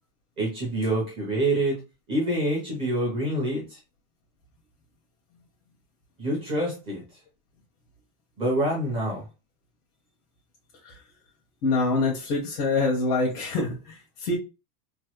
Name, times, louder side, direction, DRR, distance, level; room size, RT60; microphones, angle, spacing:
voice 1, 0.4-1.8 2.1-3.8 6.2-7.0 8.4-9.2, right 1 dB, 15° right, 0.6 m, -26 dB
voice 2, 11.6-14.4, left 3 dB, 90° left, 1.2 m, -25 dB
3.1 x 2.1 x 3.0 m
supercardioid pair, 180°, 45 cm